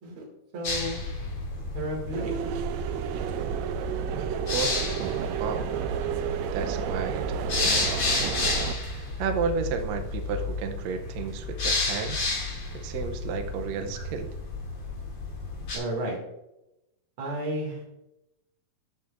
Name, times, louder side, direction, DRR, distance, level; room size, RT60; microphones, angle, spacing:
voice 1, 0.5-1.0 1.7-2.3 15.7-16.2 17.2-17.8, right 1 dB, 40° right, -2 dB, 2.9 m, -32 dB
sound 1, 0.6-15.8, left 2 dB, 45° left, 3.2 m, -32 dB
sound 2, 2.1-8.7, right 8 dB, 85° right, 1.6 m, -31 dB
voice 2, 4.5-5.0 5.4-5.7 6.5-12.3 12.7-14.3, right 5 dB, 70° right, 6 dB, 1.7 m, -33 dB
13.0 x 7.9 x 2.6 m, 0.89 s
omnidirectional pair, 3.8 m